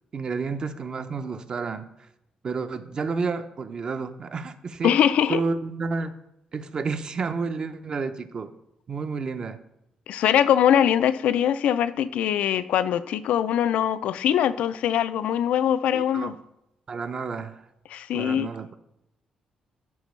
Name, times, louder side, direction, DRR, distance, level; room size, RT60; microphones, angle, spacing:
voice 1, 0.1-1.9 2.4-5.0 5.3-6.2 6.5-8.5 8.9-9.6 15.9-16.3 16.9-17.6 18.1-18.8, right 4 dB, 40° right, 10 dB, 0.5 m, -30 dB
voice 2, 4.8-5.4 10.1-16.3 17.9-18.5, left 10 dB, 85° left, 14 dB, 0.3 m, -22 dB
11.5 x 4.3 x 3.1 m, 0.86 s
cardioid pair, 115°, 2 cm